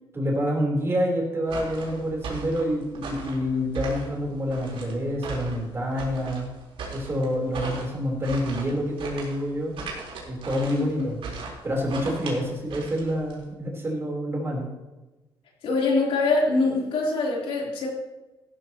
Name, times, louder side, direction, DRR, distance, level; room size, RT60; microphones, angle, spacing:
voice 1, 0.1-6.5 6.9-9.7 10.3-11.2 11.6-14.7, equal, 25° right, -1 dB, 4.0 m, -27 dB
sound 1, 1.4-13.4, right 4 dB, 70° right, 4.1 m, -38 dB
voice 2, 15.6-17.9, left 3 dB, 80° left, -3 dB, 3.8 m, -24 dB
15.5 x 13.0 x 3.1 m, 1.1 s
cardioid pair, 110°, 10 cm